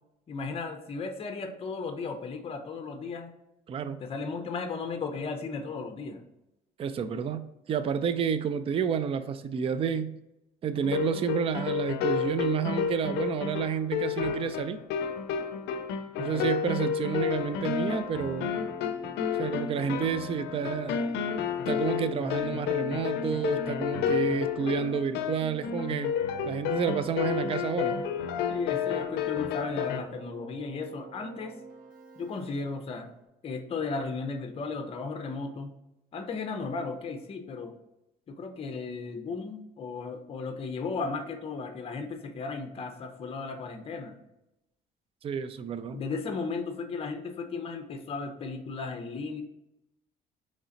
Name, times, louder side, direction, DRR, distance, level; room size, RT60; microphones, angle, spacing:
voice 1, 0.3-3.3 4.0-6.2 16.3-16.5 28.5-31.6 32.2-33.1 33.4-35.7 36.1-37.7 38.3-44.2 45.9-49.4, left 4 dB, 35° left, 6 dB, 0.6 m, -35 dB
voice 2, 3.7-4.0 6.8-10.2 10.6-14.8 16.2-18.5 19.4-20.9 21.7-26.2 26.4-28.0 45.2-46.0, right 7 dB, 35° right, 11 dB, 0.3 m, -30 dB
sound 1, 10.8-30.0, left 7 dB, 80° left, 0.5 m, -31 dB
Keyboard (musical), 18.1-33.2, right 3 dB, 50° right, 1.0 m, -49 dB
3.9 x 3.2 x 3.8 m, 0.90 s
cardioid pair, 110°, 17 cm